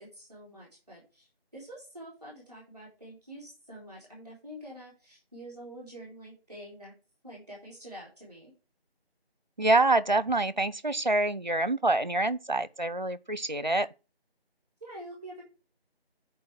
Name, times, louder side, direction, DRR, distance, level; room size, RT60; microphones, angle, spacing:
voice 1, 0.0-6.9 7.2-8.5 14.8-15.4, right 1 dB, 5° left, 3.5 m, -46 dB
voice 2, 9.6-13.9, right 2 dB, 45° right, 0.7 m, -26 dB
8.7 x 4.7 x 5.9 m
figure-of-eight pair, 180°, 32 cm